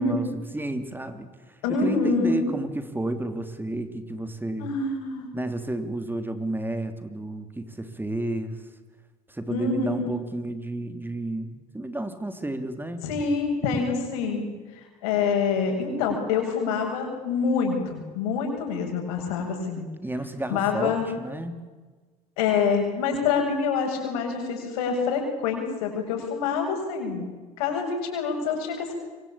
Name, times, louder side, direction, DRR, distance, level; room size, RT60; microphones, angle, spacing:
voice 1, 0.0-4.7 5.3-8.6 9.3-13.1 20.0-21.6, right 1 dB, 10° right, 9 dB, 3.1 m, -31 dB
voice 2, 1.6-2.4 4.6-5.3 9.5-10.1 13.0-19.9 20.5-21.0 22.4-27.3 27.6-29.0, left 5 dB, 85° left, 3 dB, 7.7 m, -26 dB
26.0 x 24.0 x 8.8 m, 1.3 s
supercardioid pair, 80°, 19 cm